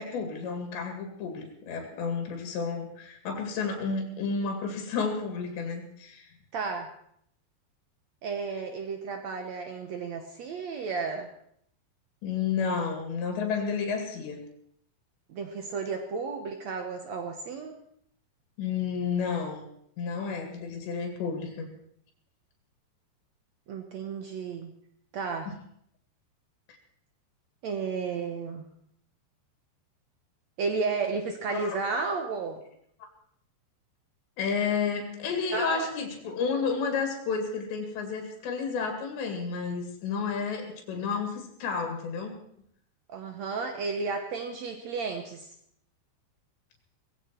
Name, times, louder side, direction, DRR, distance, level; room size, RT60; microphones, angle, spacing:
voice 1, 0.0-6.3 12.2-14.4 18.6-19.6 20.0-21.7 26.7-26.8 31.5-31.7 33.0-33.1 34.4-42.4, left 5 dB, 85° left, 3 dB, 4.5 m, -31 dB
voice 2, 6.5-6.9 8.2-11.3 15.3-17.8 23.7-24.7 25.1-25.5 27.6-28.7 30.6-32.6 35.5-35.9 43.1-45.5, right 4 dB, 85° right, 5 dB, 1.5 m, -33 dB
18.5 x 16.0 x 4.5 m, 0.69 s
omnidirectional pair, 4.9 m